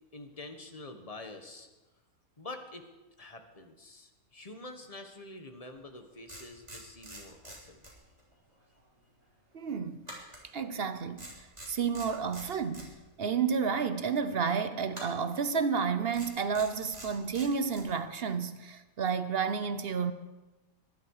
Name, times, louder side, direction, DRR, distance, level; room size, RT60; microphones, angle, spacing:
voice 1, 0.1-1.7 2.4-2.9 3.2-7.9 10.3-10.6, left 2 dB, 25° left, 1.4 m, -47 dB
sound 1, 5.8-5.9 6.3-8.3 8.6-8.8 10.0-10.9 11.2-12.9 14.9-15.4 16.1-17.9, right 1 dB, 25° right, 3.6 m, -47 dB
voice 2, 9.5-10.0 10.5-11.3 11.7-12.9 13.2-20.1, right 6 dB, 50° right, 0.9 m, -31 dB
21.5 x 11.5 x 4.9 m
omnidirectional pair, 1.5 m